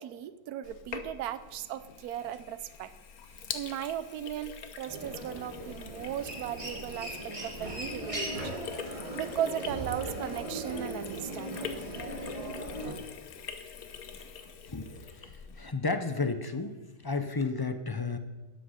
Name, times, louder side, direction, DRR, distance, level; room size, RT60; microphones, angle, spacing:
voice 1, 0.0-2.9 3.5-8.6 9.1-11.8, right 11 dB, 75° right, 14 dB, 1.2 m, -37 dB
Sink (filling or washing), 0.6-15.7, left 7 dB, 65° left, 1.4 m, -44 dB
Human voice, 4.9-12.9, right 1 dB, 20° right, 2.1 m, -38 dB
voice 2, 14.1-18.2, left 3 dB, 35° left, 9 dB, 0.3 m, -33 dB
13.0 x 10.0 x 5.7 m, 1.2 s
omnidirectional pair, 1.7 m